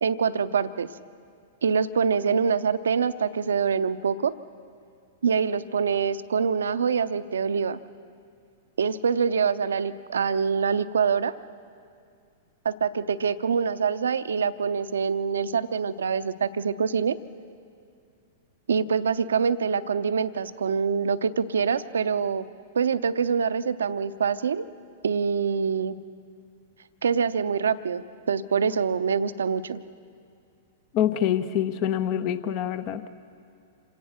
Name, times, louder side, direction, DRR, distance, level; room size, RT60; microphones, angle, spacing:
voice 1, 0.0-0.9 1.6-4.3 5.2-7.8 8.8-11.3 12.6-17.2 18.7-22.5 22.7-24.6 25.0-26.0 27.0-29.8, right 6 dB, 75° right, 14 dB, 0.6 m, -25 dB
voice 2, 30.9-33.0, left 10 dB, 40° left, 13 dB, 0.9 m, -25 dB
26.5 x 17.5 x 6.4 m, 2.4 s
figure-of-eight pair, 100°, 0 cm